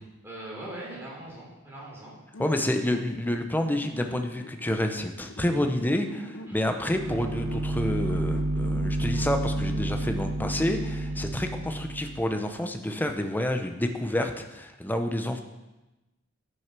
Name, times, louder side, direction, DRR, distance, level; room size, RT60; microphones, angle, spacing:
voice 1, 0.2-2.5 6.5-6.7 11.1-11.3, right 1 dB, 10° right, -5 dB, 3.4 m, -42 dB
sound 1, 2.3-11.0, left 1 dB, 75° left, 0.8 m, -44 dB
voice 2, 2.4-15.4, left 1 dB, 10° left, 6 dB, 0.7 m, -29 dB
sound 2, 6.9-12.2, right 2 dB, 80° right, 1.0 m, -30 dB
10.5 x 6.4 x 6.0 m, 1.0 s
head